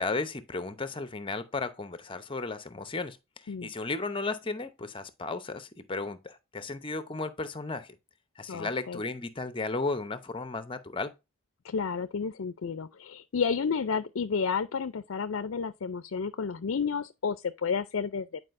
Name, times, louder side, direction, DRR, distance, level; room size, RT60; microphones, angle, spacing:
voice 1, 0.0-3.2 3.4-7.9 8.4-11.1, left 3 dB, 25° left, 0.7 m, -34 dB
voice 2, 8.5-9.0 11.6-18.4, left 5 dB, 70° left, 0.5 m, -31 dB
9.8 x 4.8 x 2.5 m
head